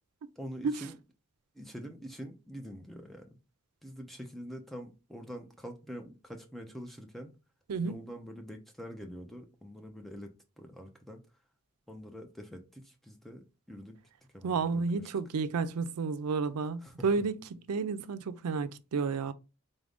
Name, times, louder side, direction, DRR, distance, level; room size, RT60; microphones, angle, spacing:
voice 1, 0.4-1.0 1.5-3.4 3.8-7.3 7.8-11.2 11.9-14.0 14.3-15.1 16.8-17.1, equal, ahead, 0.4 m, -45 dB
voice 2, 14.4-17.4 17.7-19.3, right 4 dB, 90° right, 0.4 m, -31 dB
3.9 x 2.5 x 3.4 m
head